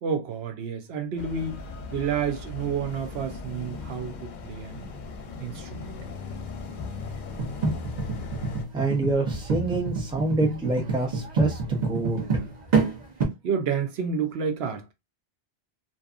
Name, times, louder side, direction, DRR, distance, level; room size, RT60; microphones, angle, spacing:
voice 1, 0.0-1.6 1.9-4.8 5.4-5.9 13.4-14.9, right 6 dB, 75° right, 0.8 m, -30 dB
sound 1, 1.2-8.7, left 3 dB, 55° left, 0.6 m, -38 dB
sound 2, 7.4-13.2, right 3 dB, 45° right, 0.8 m, -27 dB
voice 2, 8.7-12.5, right 3 dB, 5° right, 0.5 m, -27 dB
2.6 x 2.4 x 2.4 m
omnidirectional pair, 1.1 m